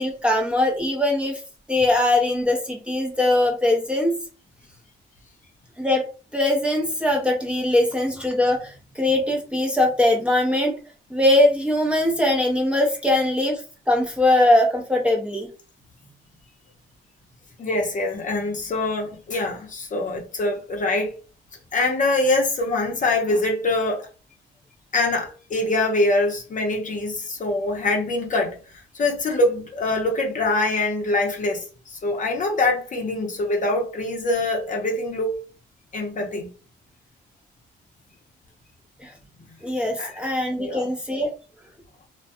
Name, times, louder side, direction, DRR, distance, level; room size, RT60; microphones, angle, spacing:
voice 1, 0.0-1.4 1.7-4.1 5.8-6.1 6.3-10.7 11.1-13.6 13.9-15.5 39.0-39.1 39.6-41.3, left 1 dB, 5° right, 0.7 m, -21 dB
voice 2, 17.6-21.2 21.7-24.1 24.9-28.6 28.9-35.4 35.9-36.5 40.0-40.3 40.6-40.9, left 2 dB, 40° left, 0.7 m, -24 dB
2.2 x 2.2 x 2.6 m
cardioid pair, 90°, 20 cm